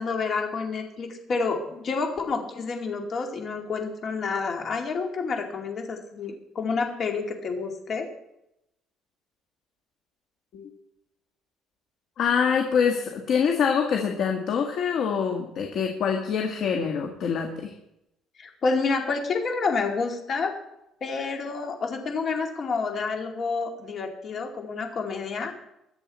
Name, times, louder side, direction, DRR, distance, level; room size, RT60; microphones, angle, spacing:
voice 1, 0.0-8.1 18.4-20.6 21.0-25.5, left 4 dB, 40° left, 3 dB, 2.4 m, -29 dB
voice 2, 12.2-17.7, left 6 dB, 55° left, 2 dB, 1.7 m, -25 dB
22.0 x 7.7 x 4.3 m, 0.84 s
cardioid pair, 130°, 0 cm